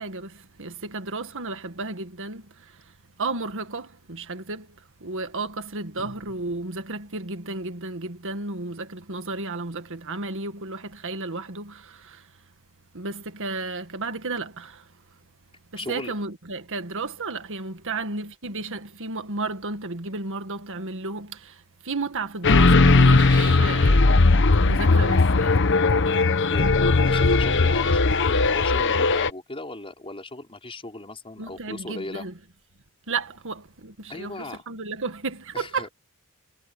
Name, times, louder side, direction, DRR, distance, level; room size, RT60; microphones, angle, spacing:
voice 1, 0.0-12.4 12.9-15.0 15.9-24.2 24.7-25.8 31.4-32.3 33.1-35.9, right 3 dB, 60° right, 1.9 m, -33 dB
voice 2, 15.8-16.1 26.1-26.2 26.5-26.7 27.0-32.3 34.1-34.6 35.5-35.9, left 2 dB, 25° left, 4.9 m, -37 dB
sound 1, 22.4-29.3, left 3 dB, 55° left, 1.0 m, -18 dB
head